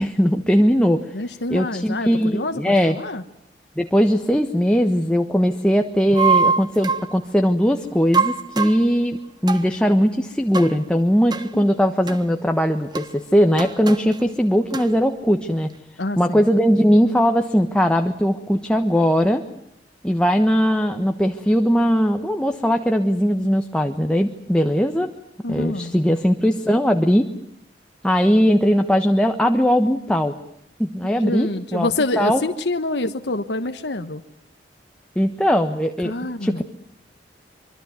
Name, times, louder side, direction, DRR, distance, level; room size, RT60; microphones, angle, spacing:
voice 1, 0.0-1.0 1.5-2.9 3.8-9.2 9.4-15.7 16.2-19.4 20.0-25.1 25.5-27.2 28.0-30.3 30.8-31.9 32.2-32.4 35.1-36.1 36.4-36.6, equal, 5° left, 4 dB, 1.2 m, -19 dB
voice 2, 1.1-3.2 16.0-16.5 25.4-25.9 31.1-34.2 36.0-36.6, left 2 dB, 80° left, 7 dB, 1.2 m, -27 dB
sound 1, 6.1-7.1 8.1-8.8 9.5-9.7 10.5-10.8 11.3-11.5 12.1-12.2 12.9-13.1 13.6-14.2 14.7-14.9, right 5 dB, 25° right, 1.4 m, -22 dB
25.5 x 24.0 x 9.5 m, 0.72 s
head